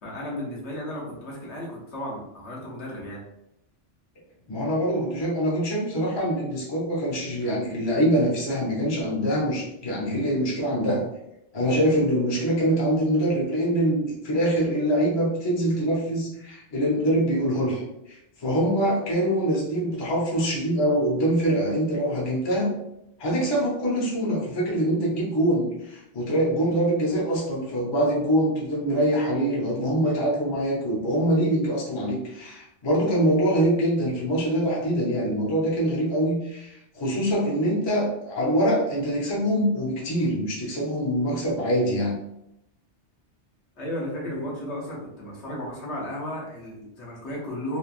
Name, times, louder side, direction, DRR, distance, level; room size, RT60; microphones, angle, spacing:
voice 1, 0.0-3.2 43.8-47.8, left 1 dB, 70° left, -4 dB, 1.1 m, -34 dB
voice 2, 4.5-11.0 11.5-17.8 18.1-22.7 23.2-42.2, right 1 dB, 25° left, -4 dB, 0.6 m, -24 dB
3.1 x 2.2 x 2.4 m, 0.83 s
omnidirectional pair, 1.2 m